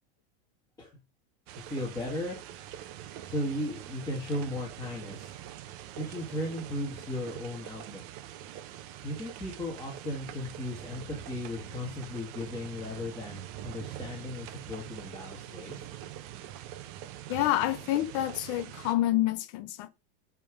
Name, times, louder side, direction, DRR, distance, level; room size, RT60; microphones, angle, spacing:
sound 1, 1.5-18.9, right 12 dB, 40° right, 0.8 m, -44 dB
voice 1, 1.6-2.6 3.2-5.3 6.0-8.0 9.0-15.9, left 1 dB, 10° left, 2.4 m, -36 dB
voice 2, 17.3-19.9, left 14 dB, 35° left, 0.4 m, -28 dB
10.5 x 3.6 x 5.0 m
supercardioid pair, 170°, 31 cm